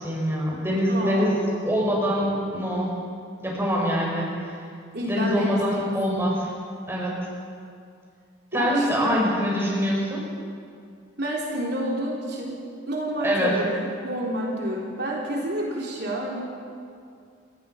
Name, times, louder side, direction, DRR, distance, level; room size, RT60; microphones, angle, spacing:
voice 1, 0.0-2.9 3.4-4.5 5.1-6.5 6.9-7.2 8.5-10.3 13.2-13.6, equal, 10° right, -3 dB, 6.0 m, -24 dB
voice 2, 0.9-1.7 4.9-5.9 8.5-9.2 11.2-12.6 12.9-16.4, right 1 dB, 55° right, -3 dB, 3.7 m, -29 dB
29.5 x 19.0 x 5.8 m, 2.4 s
head